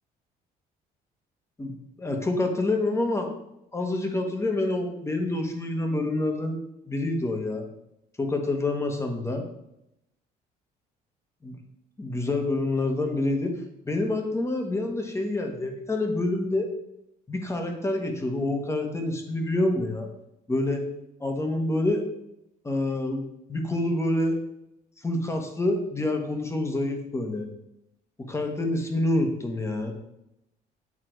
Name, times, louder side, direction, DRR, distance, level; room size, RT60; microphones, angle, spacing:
voice 1, 1.6-3.3 3.7-6.6 6.9-7.6 8.2-9.4 11.4-11.6 12.0-13.5 13.9-16.7 17.3-20.1 20.5-20.8 21.2-22.0 22.6-23.2 23.5-24.4 25.0-27.5 28.2-29.9, left 2 dB, 15° left, 3 dB, 1.3 m, -27 dB
8.5 x 3.8 x 4.6 m, 0.83 s
cardioid pair, 110°, 17 cm